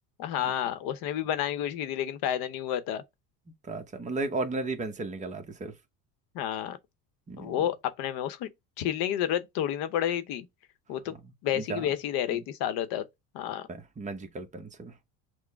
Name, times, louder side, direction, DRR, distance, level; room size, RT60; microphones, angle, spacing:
voice 1, 0.2-3.0 6.3-6.8 7.4-8.5 8.8-10.5 10.9-11.2 11.4-13.0 13.3-13.7, left 10 dB, 70° left, 0.9 m, -30 dB
voice 2, 3.6-5.7 7.3-7.7 11.1-11.2 11.5-12.0 12.3-12.4 13.7-14.9, right 3 dB, 20° right, 0.8 m, -35 dB
6.1 x 2.1 x 3.4 m
cardioid pair, 135°, 38 cm